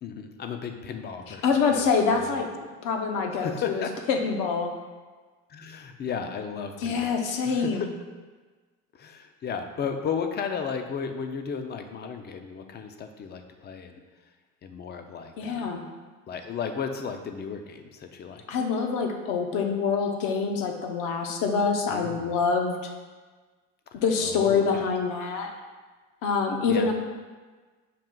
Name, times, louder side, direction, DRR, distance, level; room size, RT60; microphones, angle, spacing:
voice 1, 0.0-1.5 1.7-2.4 3.4-3.9 5.5-7.2 7.4-7.9 8.9-14.0 14.6-15.7 16.3-18.4 21.9-22.3 23.9-24.9 26.7-26.9, left 6 dB, 30° left, 6 dB, 0.4 m, -34 dB
voice 2, 1.3-2.5 2.8-4.7 6.8-7.9 15.4-15.8 18.5-22.7 23.9-25.5 26.2-26.9, left 5 dB, 60° left, 3 dB, 0.8 m, -25 dB
5.7 x 2.4 x 3.7 m, 1.4 s
supercardioid pair, 95°, 35 cm